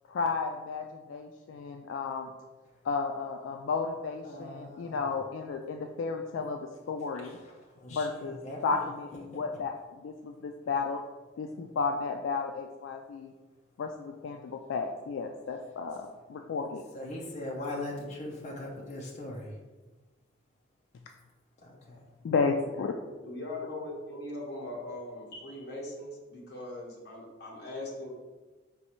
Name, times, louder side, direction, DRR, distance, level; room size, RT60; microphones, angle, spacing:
voice 1, 0.1-2.3 2.8-6.6 6.9-7.4 7.9-9.7 10.0-11.0 11.4-13.3 13.8-16.8 22.2-22.9, left 4 dB, 75° left, 4 dB, 0.3 m, -33 dB
voice 2, 4.2-5.1 7.2-8.8 9.3-9.4 16.9-19.5 21.6-22.0, left 1 dB, 35° left, -3 dB, 0.6 m, -40 dB
voice 3, 23.2-28.1, left 1 dB, 55° left, -2 dB, 1.0 m, -40 dB
5.3 x 3.1 x 3.0 m, 1.2 s
head